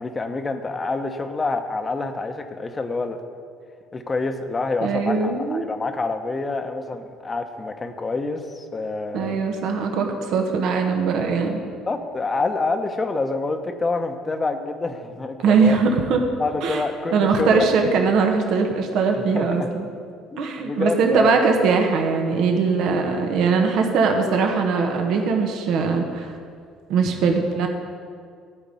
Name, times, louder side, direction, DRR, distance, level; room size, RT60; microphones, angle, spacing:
voice 1, 0.0-3.2 3.9-9.4 11.9-15.8 16.4-17.7 19.2-19.7 20.3-21.5, left 3 dB, 30° left, 6 dB, 1.1 m, -27 dB
voice 2, 4.8-5.6 9.1-11.6 15.4-16.2 16.6-16.8 17.1-19.9 20.4-26.4 26.9-27.7, right 5 dB, 65° right, 3 dB, 1.3 m, -21 dB
13.0 x 5.1 x 8.5 m, 2.1 s
hypercardioid pair, 60°, 0 cm